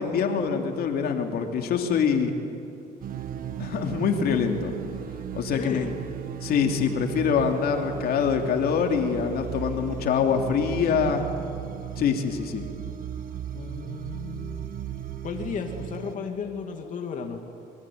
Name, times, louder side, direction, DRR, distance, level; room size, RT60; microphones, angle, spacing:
voice 1, 0.0-2.3 3.6-4.7 5.3-5.8 6.4-11.3 12.0-12.7, left 6 dB, 65° left, 4 dB, 2.9 m, -25 dB
sound 1, 3.0-16.2, right 10 dB, 55° right, 1.4 m, -36 dB
voice 2, 5.5-5.9 13.5-14.7 15.2-17.4, left 6 dB, 50° left, 3 dB, 2.7 m, -34 dB
26.5 x 24.5 x 9.3 m, 2.6 s
cardioid pair, 110°, 17 cm